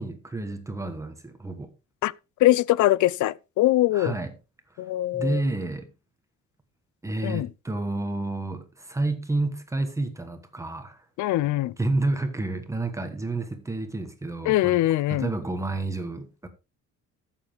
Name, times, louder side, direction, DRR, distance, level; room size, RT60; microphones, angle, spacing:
voice 1, 0.0-1.7 3.9-4.3 5.1-5.9 7.0-11.0 11.8-14.8 15.1-16.5, right 2 dB, 10° right, 1.2 m, -30 dB
voice 2, 2.4-4.1 4.8-5.4 7.2-7.5 11.2-11.7 14.5-15.3, left 15 dB, 80° left, 0.6 m, -22 dB
13.5 x 7.4 x 3.5 m
cardioid pair, 170°, 29 cm